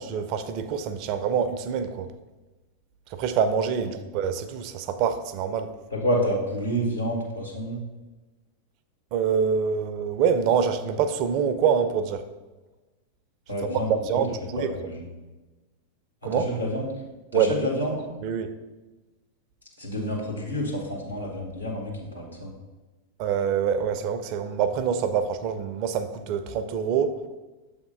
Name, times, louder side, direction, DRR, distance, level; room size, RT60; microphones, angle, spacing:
voice 1, 0.0-2.1 3.1-5.7 9.1-12.2 13.6-14.7 16.2-16.5 17.3-17.7 18.2-18.5 23.2-27.2, right 7 dB, 45° right, 10 dB, 0.5 m, -25 dB
voice 2, 5.9-7.8 13.5-14.0 14.6-15.1 16.2-17.1 17.3-18.1 19.8-22.5, equal, 85° left, -1 dB, 1.5 m, -29 dB
7.1 x 3.5 x 5.2 m, 1.2 s
figure-of-eight pair, 90°, 0 cm